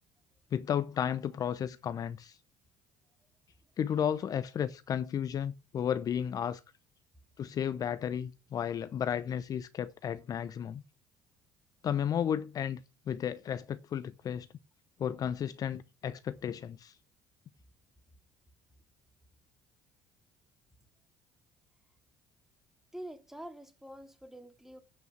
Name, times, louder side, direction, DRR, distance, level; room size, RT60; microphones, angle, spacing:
voice 1, 0.5-2.4 3.8-6.6 7.4-10.8 11.8-12.8 13.1-14.5 15.0-16.9, left 9 dB, 45° left, 0.8 m, -33 dB
voice 2, 22.9-24.8, right 1 dB, 5° right, 2.4 m, -46 dB
8.9 x 8.0 x 6.1 m
hypercardioid pair, 65°, 9 cm